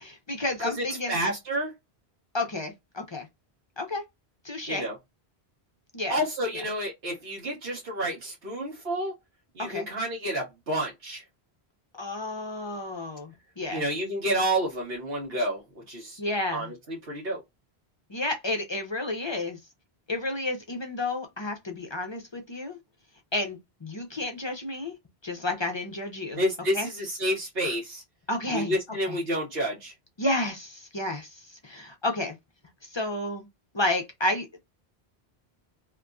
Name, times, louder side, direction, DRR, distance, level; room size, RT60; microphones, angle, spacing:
voice 1, 0.0-1.2 2.3-3.3 3.8-4.0 4.4-4.9 5.9-6.1 9.6-9.9 11.9-13.8 16.2-16.7 18.1-19.6 20.1-22.8 23.3-24.9 25.2-26.4 26.7-26.9 28.3-28.7 29.1-29.2 30.2-31.3 31.6-32.3 32.9-33.5 33.7-34.6, left 2 dB, 35° left, 0.5 m, -31 dB
voice 2, 0.6-1.7 4.7-4.9 6.1-9.1 9.5-11.2 13.7-16.2 16.5-17.4 26.3-28.0 28.5-29.9, equal, 70° right, 1.3 m, -29 dB
2.9 x 2.5 x 2.2 m
omnidirectional pair, 1.1 m